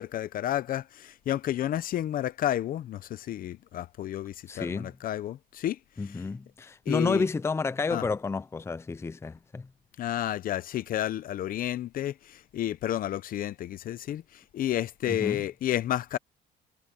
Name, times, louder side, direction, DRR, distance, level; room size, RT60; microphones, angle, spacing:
voice 1, 0.0-5.8 6.9-7.2 7.9-8.0 10.0-16.2, left 12 dB, 55° left, 0.8 m, -31 dB
voice 2, 4.5-4.9 6.0-9.7 15.1-15.4, left 4 dB, 15° left, 0.5 m, -30 dB
cardioid pair, 110°, 17 cm